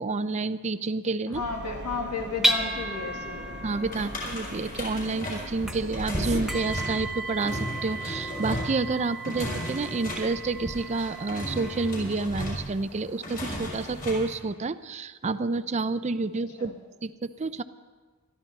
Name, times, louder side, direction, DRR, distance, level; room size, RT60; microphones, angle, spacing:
voice 1, 0.0-1.4 3.6-17.6, right 3 dB, 30° right, 13 dB, 0.4 m, -29 dB
voice 2, 1.3-3.6 3.9-4.2 16.6-16.8, left 4 dB, 90° left, 2 dB, 2.2 m, -34 dB
sound 1, 1.3-6.8, right 2 dB, 50° right, 0.8 m, -41 dB
sound 2, 1.7-11.9, right 1 dB, ahead, 0.8 m, -34 dB
sound 3, 3.9-14.3, equal, 40° left, 5.5 m, -35 dB
21.5 x 13.5 x 4.1 m, 1.4 s
head